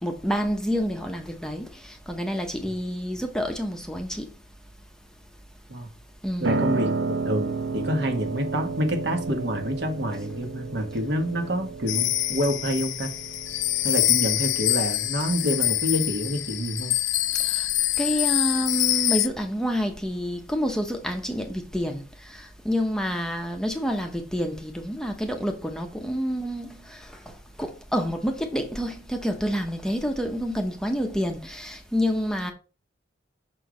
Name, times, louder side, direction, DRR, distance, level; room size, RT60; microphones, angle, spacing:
voice 1, 0.0-4.3 6.2-6.6 17.4-17.7 18.0-22.0 22.3-27.0 27.6-32.5, equal, 5° left, 0.8 m, -28 dB
voice 2, 6.4-13.1 13.8-17.0, equal, 60° right, 1.4 m, -27 dB
Piano, 6.4-16.4, right 3 dB, 80° right, 0.9 m, -32 dB
sound 1, 11.9-19.3, left 16 dB, 70° left, 0.5 m, -25 dB
6.3 x 4.5 x 5.1 m
head